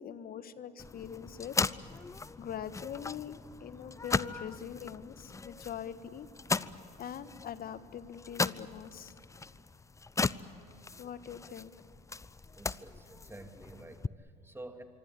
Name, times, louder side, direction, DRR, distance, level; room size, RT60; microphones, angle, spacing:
voice 1, 0.0-1.7 2.4-6.3 7.0-9.1 11.0-11.7, left 9 dB, 45° left, 12 dB, 1.5 m, -43 dB
sound 1, 0.8-14.1, left 4 dB, 15° left, 0.6 m, -38 dB
voice 2, 12.5-14.8, right 2 dB, 10° right, 5 dB, 2.9 m, -49 dB
25.0 x 25.0 x 8.5 m, 2.7 s
hypercardioid pair, 70°, 21 cm